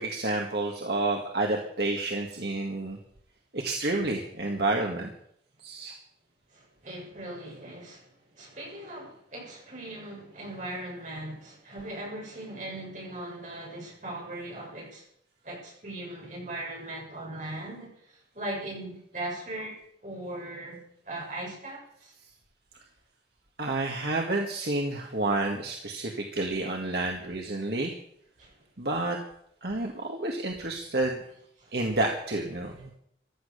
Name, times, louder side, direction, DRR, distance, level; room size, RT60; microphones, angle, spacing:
voice 1, 0.0-3.0 3.5-5.1 5.6-5.9 23.6-27.9 28.8-29.2 29.6-31.2 31.7-32.9, right 2 dB, 65° right, 1.9 m, -29 dB
voice 2, 6.5-8.1 8.4-15.0 15.4-19.7 20.0-22.1 28.4-28.5 31.6-31.8, right 1 dB, 45° right, 7.6 m, -39 dB
15.5 x 12.0 x 6.9 m
head